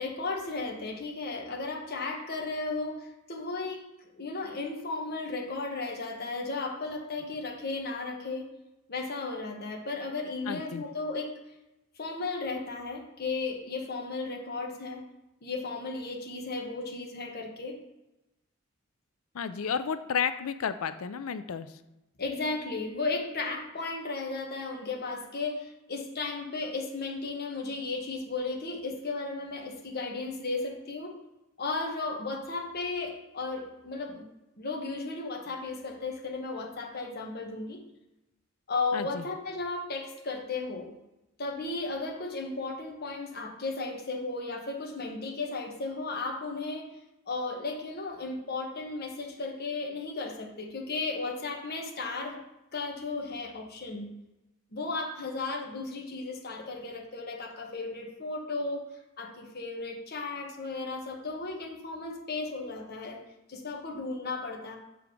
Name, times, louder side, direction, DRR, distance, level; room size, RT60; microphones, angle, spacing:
voice 1, 0.0-8.5 8.9-11.3 12.0-15.0 15.4-17.8 22.2-31.2 31.6-34.2 34.6-37.8 38.7-40.9 41.4-46.9 47.3-52.4 52.7-54.1 54.7-58.8 59.2-63.2 63.5-64.8, left 3 dB, 50° left, 1 dB, 1.3 m, -35 dB
voice 2, 10.5-10.8 19.3-21.8 38.9-39.3, left 6 dB, 75° left, 11 dB, 0.4 m, -32 dB
6.9 x 3.5 x 6.0 m, 0.94 s
head